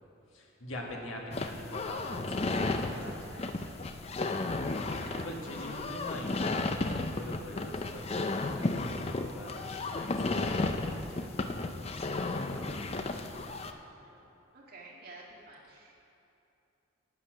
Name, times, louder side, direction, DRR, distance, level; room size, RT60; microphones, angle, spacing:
voice 1, 0.3-3.2 5.2-6.3 6.5-11.7 12.1-13.2, left 1 dB, 75° left, -1 dB, 1.8 m, -44 dB
sound 1, 1.3-13.7, left 2 dB, 30° left, 0.4 m, -33 dB
voice 2, 2.2-3.8 4.2-4.4 4.8-5.5 5.8-6.1 14.0-14.3 14.5-15.9, right 2 dB, 45° right, -4 dB, 1.8 m, -51 dB
11.0 x 8.7 x 6.2 m, 2.8 s
head